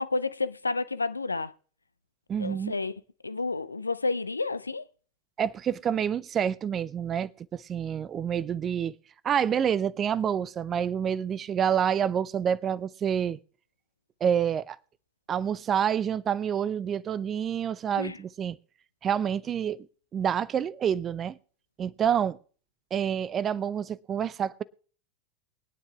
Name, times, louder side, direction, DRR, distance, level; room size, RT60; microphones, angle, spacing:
voice 1, 0.0-1.5 2.4-2.9 3.2-4.9 18.0-18.2, left 3 dB, 85° left, 0.5 m, -30 dB
voice 2, 2.3-2.7 5.4-8.9 9.2-13.4 14.2-14.8 15.3-18.6 19.0-19.9 20.1-21.4 21.8-22.4 22.9-24.6, right 8 dB, 30° right, 0.5 m, -28 dB
23.0 x 9.7 x 2.3 m
figure-of-eight pair, 85°, 0 cm